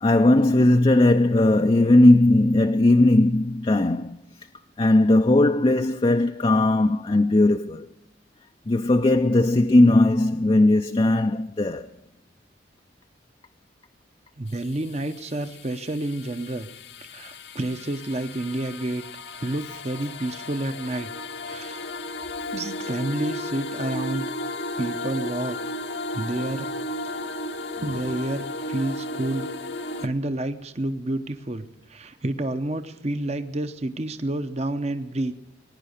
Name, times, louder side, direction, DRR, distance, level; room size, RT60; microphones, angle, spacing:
voice 1, 0.0-4.2 4.8-7.9 8.7-11.9 19.6-19.8, left 2 dB, 30° left, 0.5 m, -18 dB
voice 2, 14.4-16.7 17.0-19.0 19.4-21.1 21.4-21.9 22.5-24.3 24.8-25.6 26.1-26.7 27.8-29.5 29.8-35.3, right 1 dB, 35° right, 0.8 m, -29 dB
sound 1, 14.5-30.1, left 1 dB, 60° left, 0.9 m, -34 dB
21.0 x 10.0 x 6.5 m
head